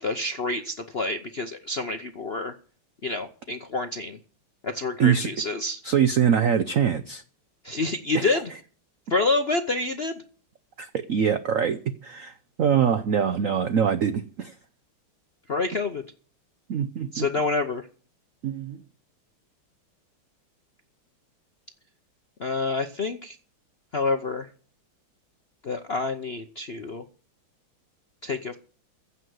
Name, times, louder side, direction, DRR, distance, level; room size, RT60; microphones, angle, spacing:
voice 1, 0.0-2.5 3.0-4.2 4.6-5.8 7.6-8.5 9.1-10.2 15.5-16.0 17.1-17.9 22.4-23.4 23.9-24.5 25.6-27.0 28.2-28.6, left 3 dB, 55° left, 6 dB, 0.6 m, -28 dB
voice 2, 5.8-7.2 8.1-8.2 10.8-12.3 12.6-14.5 16.7-17.3 18.4-18.8, right 8 dB, 70° right, 11 dB, 0.7 m, -23 dB
15.5 x 5.8 x 9.4 m, 0.42 s
omnidirectional pair, 2.3 m